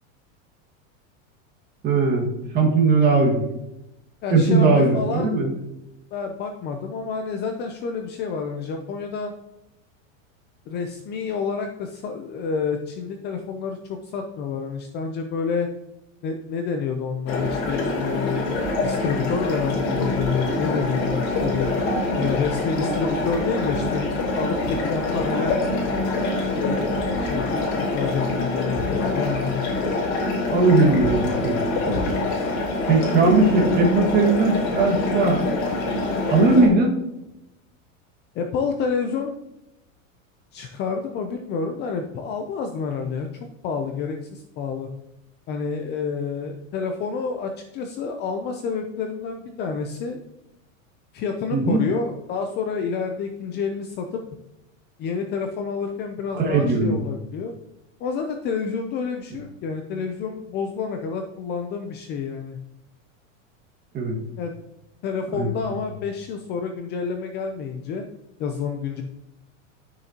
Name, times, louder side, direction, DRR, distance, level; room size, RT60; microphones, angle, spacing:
voice 1, 1.8-2.3 2.5-3.4 4.3-5.5 30.5-31.6 31.8-32.1 32.9-35.4 36.3-37.0 51.5-51.8 56.3-57.0 63.9-64.2 65.4-65.5, right 3 dB, 25° right, 0 dB, 1.8 m, -19 dB
voice 2, 4.2-5.3 6.1-9.3 10.7-15.7 16.2-21.7 22.2-24.1 24.3-25.6 26.5-29.6 38.3-39.4 40.5-43.3 43.6-44.9 45.5-50.2 51.1-54.2 55.0-57.5 58.0-62.6 64.4-64.5 65.0-68.1 68.4-69.0, left 5 dB, 25° left, 5 dB, 0.5 m, -28 dB
sound 1, 17.3-36.7, left 2 dB, 55° left, 3.5 m, -25 dB
11.5 x 6.7 x 2.9 m, 0.90 s
supercardioid pair, 150°, 39 cm